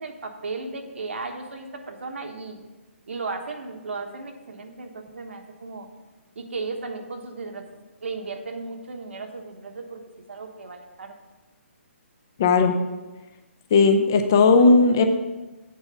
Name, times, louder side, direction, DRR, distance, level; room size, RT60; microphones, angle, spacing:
voice 1, 0.0-2.6 3.1-5.9 6.3-10.0 10.3-11.2, right 3 dB, 65° right, 4 dB, 1.2 m, -35 dB
voice 2, 12.4-12.7 13.7-15.0, left 4 dB, 15° left, 6 dB, 0.4 m, -16 dB
8.0 x 4.4 x 6.9 m, 1.2 s
hypercardioid pair, 180°, 7 cm